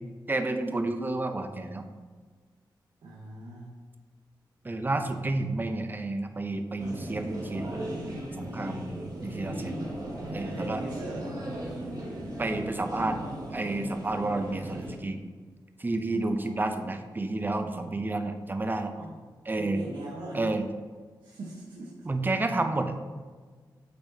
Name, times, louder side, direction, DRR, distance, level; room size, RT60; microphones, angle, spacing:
voice 1, 0.3-1.8 4.6-7.8 8.4-9.8 10.3-10.8 12.4-13.2 13.5-15.2 15.8-18.9 19.5-19.8 20.3-20.6 22.1-22.9, right 2 dB, 25° right, 6 dB, 0.7 m, -30 dB
voice 2, 3.0-3.7 10.4-11.4 16.3-16.9 17.6-18.0 18.9-19.2 19.6-20.5 21.2-21.9, right 2 dB, 85° right, -4 dB, 1.3 m, -41 dB
sound 1, 6.8-14.9, right 1 dB, 55° right, 2.2 m, -37 dB
8.5 x 6.0 x 2.9 m, 1.5 s
cardioid pair, 85°, 8 cm